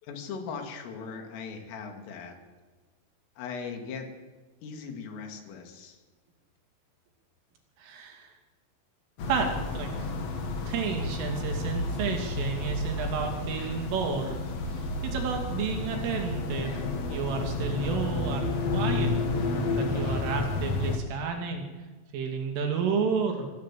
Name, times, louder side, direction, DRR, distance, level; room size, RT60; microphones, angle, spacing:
voice 1, 0.0-2.4 3.4-4.1 4.6-6.0, left 5 dB, 85° left, 5 dB, 5.0 m, -39 dB
voice 2, 7.8-8.3 9.3-10.1 10.7-16.8 17.1-21.7 22.1-23.5, right 5 dB, 80° right, 3 dB, 5.3 m, -31 dB
sound 1, 9.2-21.0, left 2 dB, 50° left, 2.0 m, -31 dB
26.0 x 16.0 x 7.7 m, 1.3 s
omnidirectional pair, 5.7 m